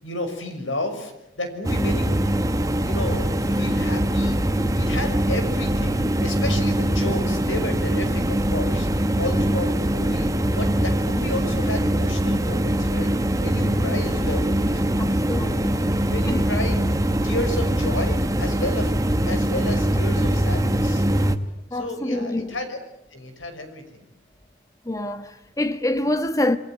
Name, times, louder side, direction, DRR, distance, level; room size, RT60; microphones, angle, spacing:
voice 1, 0.0-2.3 2.8-4.4 4.8-13.1 13.4-15.6 15.9-16.8 17.2-18.9 19.3-21.0 21.7-22.8 23.1-23.8, left 1 dB, 85° left, 6.3 m, -32 dB
sound 1, 1.6-21.4, right 1 dB, 15° right, 1.3 m, -22 dB
voice 2, 15.0-15.9 16.3-16.5 21.7-22.5 24.8-26.6, left 1 dB, 15° left, 1.2 m, -26 dB
28.0 x 23.0 x 9.3 m
head